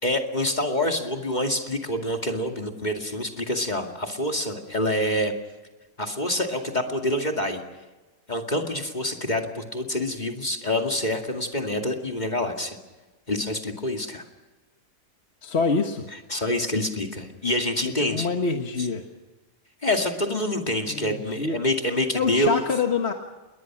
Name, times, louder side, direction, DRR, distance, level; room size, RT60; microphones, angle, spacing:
voice 1, 0.0-5.3 6.0-7.6 8.3-12.8 13.3-14.2 16.3-18.3 19.8-22.6, left 1 dB, 30° left, 3 dB, 2.4 m, -26 dB
voice 2, 15.4-16.1 18.0-19.0 20.9-21.6 22.1-23.1, left 4 dB, 50° left, 4 dB, 1.7 m, -25 dB
29.0 x 22.0 x 6.1 m, 1.2 s
omnidirectional pair, 1.5 m